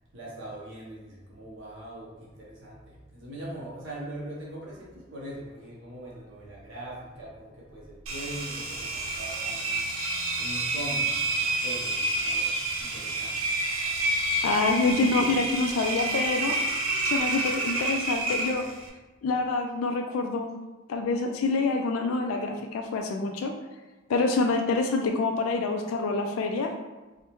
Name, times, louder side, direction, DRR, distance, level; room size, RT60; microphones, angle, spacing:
voice 1, 0.1-9.8 10.4-12.5 12.8-13.4, right 1 dB, 60° right, -5 dB, 0.9 m, -41 dB
Engine, 8.1-18.9, right 2 dB, 85° right, 0.6 m, -29 dB
voice 2, 14.4-16.5 17.0-18.7 19.2-20.5 20.9-23.5 24.1-26.7, left 3 dB, 85° left, 3 dB, 0.3 m, -26 dB
4.7 x 2.1 x 2.9 m, 1.2 s
head